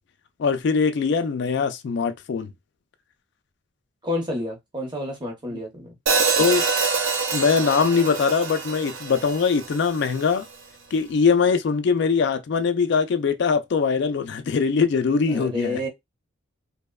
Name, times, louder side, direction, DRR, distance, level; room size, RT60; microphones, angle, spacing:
voice 1, 0.4-2.5 5.5-5.6 6.4-6.7 7.3-10.4 10.9-15.9, left 5 dB, 55° left, 0.3 m, -22 dB
voice 2, 4.0-6.0 15.3-15.9, left 1 dB, 20° right, 0.7 m, -29 dB
Hi-hat, 6.1-10.2, right 4 dB, 70° right, 0.5 m, -25 dB
2.8 x 2.0 x 2.2 m
head